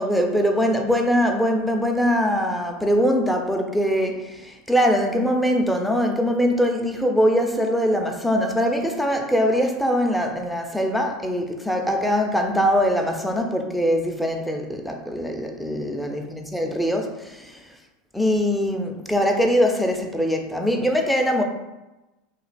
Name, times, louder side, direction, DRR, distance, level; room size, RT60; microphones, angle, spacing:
voice 1, 0.0-17.6 18.1-21.4, equal, ahead, 3 dB, 0.6 m, -22 dB
3.0 x 2.7 x 4.1 m, 1.0 s
hypercardioid pair, 90°, 0 cm